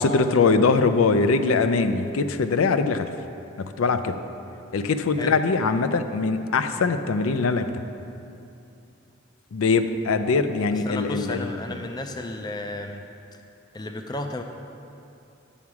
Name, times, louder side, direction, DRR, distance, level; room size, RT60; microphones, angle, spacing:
voice 1, 0.0-3.1 3.6-4.2 4.7-7.7 9.5-11.5, left 4 dB, 80° left, 9 dB, 0.4 m, -22 dB
voice 2, 10.7-13.0 13.7-14.4, left 2 dB, 20° left, 5 dB, 0.4 m, -33 dB
9.1 x 7.1 x 4.8 m, 2.7 s
head